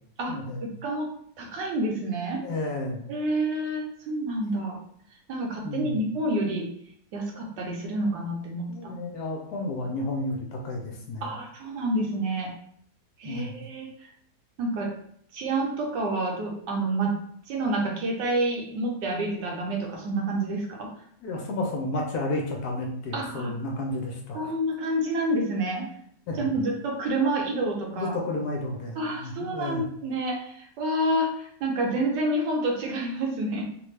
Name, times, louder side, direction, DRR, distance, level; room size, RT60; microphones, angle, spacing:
voice 1, 0.3-0.6 2.4-3.1 5.6-6.0 8.7-11.3 13.2-13.6 21.2-24.5 26.3-26.5 27.9-29.8, left 2 dB, 70° left, 1 dB, 1.0 m, -32 dB
voice 2, 1.4-2.4 3.1-4.8 5.3-6.7 7.1-9.0 11.2-12.5 13.2-13.9 14.6-14.9 15.3-17.1 17.5-20.9 23.1-23.5 24.3-25.9 26.4-28.1 29.0-33.6, right 1 dB, 80° right, 0 dB, 1.3 m, -28 dB
3.3 x 2.2 x 3.1 m, 0.68 s
omnidirectional pair, 1.9 m